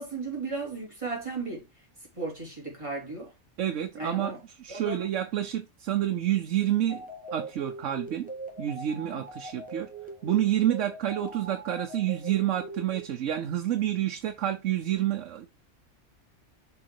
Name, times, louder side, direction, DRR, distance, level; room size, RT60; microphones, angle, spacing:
voice 1, 0.0-1.7 2.2-3.3 4.0-4.4 4.7-5.0 9.0-9.2, right 3 dB, 25° right, 3.6 m, -35 dB
voice 2, 3.6-7.0 7.3-8.3 8.6-9.9 10.2-15.5, right 11 dB, 85° right, 1.1 m, -28 dB
sound 1, 6.9-13.1, right 2 dB, 5° right, 1.3 m, -42 dB
6.8 x 3.9 x 4.7 m
omnidirectional pair, 1.2 m